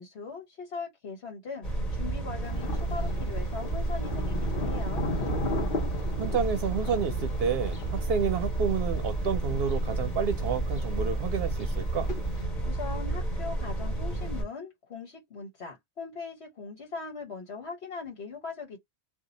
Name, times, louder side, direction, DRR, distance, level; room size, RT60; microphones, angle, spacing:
voice 1, 0.0-1.7 1.9-5.1 12.6-18.8, left 4 dB, 70° left, 1.3 m, -40 dB
sound 1, 1.6-14.4, right 2 dB, 35° left, 1.5 m, -31 dB
Thunder, 2.4-12.4, left 2 dB, 55° left, 1.0 m, -37 dB
voice 2, 6.2-12.1, right 6 dB, 70° right, 0.8 m, -30 dB
2.7 x 2.4 x 3.8 m
omnidirectional pair, 1.1 m